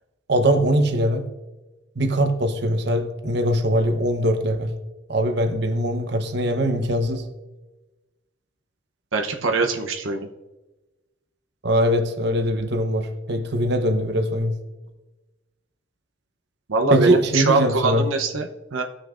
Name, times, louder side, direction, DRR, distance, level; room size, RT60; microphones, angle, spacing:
voice 1, 0.3-1.2 2.0-4.7 5.1-7.2 11.6-14.5 16.9-18.1, equal, 55° right, 6 dB, 0.9 m, -21 dB
voice 2, 9.1-10.3 16.7-18.8, right 3 dB, 85° right, 4 dB, 0.8 m, -23 dB
17.0 x 6.5 x 2.5 m, 1.1 s
head